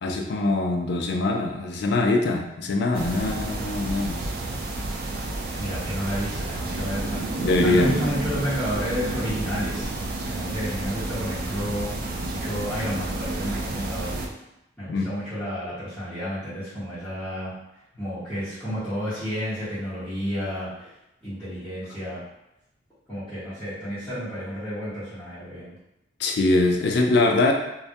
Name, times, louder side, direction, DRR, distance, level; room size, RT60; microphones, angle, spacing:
voice 1, 0.0-4.2 7.4-8.0 14.9-15.1 26.2-27.5, left 2 dB, 60° left, 3 dB, 0.3 m, -23 dB
sound 1, 2.9-14.3, right 2 dB, 55° right, 0.3 m, -30 dB
voice 2, 5.6-7.2 7.6-9.9 10.2-14.2 14.8-17.5 18.0-20.9 21.2-22.2 23.1-25.7, equal, 10° left, -17 dB, 0.9 m, -31 dB
2.2 x 2.1 x 2.7 m, 0.87 s
head